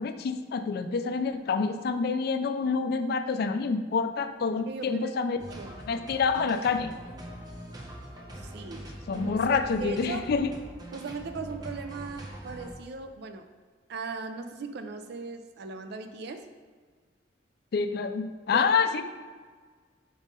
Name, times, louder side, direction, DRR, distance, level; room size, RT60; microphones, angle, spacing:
voice 1, 0.0-5.4 5.9-6.9 9.1-10.5 17.7-19.0, left 5 dB, 60° left, 9 dB, 0.4 m, -27 dB
voice 2, 4.7-5.8 8.4-10.3 10.9-13.5 13.9-16.5 18.5-18.7, right 4 dB, 65° right, 8 dB, 0.4 m, -39 dB
sound 1, 5.4-12.7, right 1 dB, 20° right, 0.8 m, -43 dB
5.1 x 3.5 x 5.2 m, 1.5 s
head